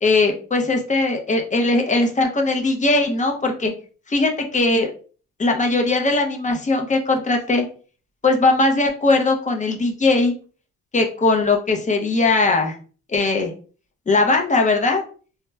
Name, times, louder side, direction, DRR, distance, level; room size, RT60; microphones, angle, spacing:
voice 1, 0.0-3.7 4.1-4.9 5.4-7.6 8.2-10.3 10.9-12.8 13.1-13.5 14.1-15.0, left 3 dB, 25° left, 2 dB, 0.6 m, -19 dB
2.9 x 2.1 x 2.2 m, 0.40 s
cardioid pair, 90°, 30 cm